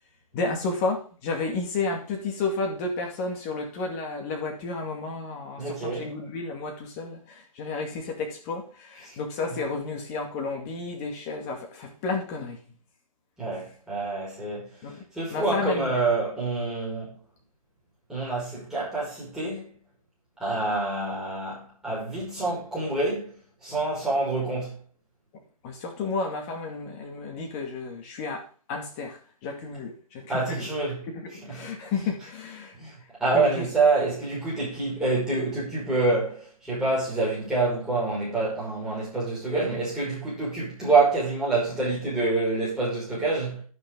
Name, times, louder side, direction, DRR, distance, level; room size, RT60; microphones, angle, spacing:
voice 1, 0.3-12.6 14.8-15.0 15.3-15.9 25.6-30.7 31.1-32.8 33.3-33.7, left 3 dB, 25° left, 2.3 m, -32 dB
voice 2, 5.6-6.1 9.1-9.2 13.4-14.7 15.1-17.2 18.1-19.7 20.4-24.8 30.3-31.0 31.4-31.7 32.7-32.9 33.2-43.6, right 3 dB, 5° right, 5.8 m, -27 dB
10.5 x 9.3 x 3.9 m
hypercardioid pair, 155°, 19 cm